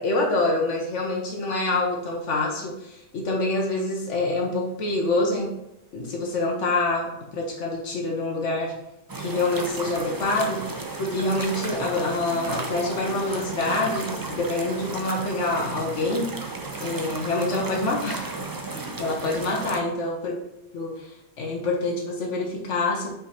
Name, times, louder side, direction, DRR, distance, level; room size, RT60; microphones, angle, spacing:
voice 1, 0.0-5.5 5.9-8.7 9.2-10.7 11.0-16.3 16.8-18.3 18.7-20.4 20.7-21.1 21.4-23.1, left 2 dB, 80° left, -1 dB, 1.3 m, -26 dB
sound 1, 9.1-19.8, right 3 dB, 25° right, 0.5 m, -34 dB
5.6 x 5.0 x 4.3 m, 0.86 s
omnidirectional pair, 1.2 m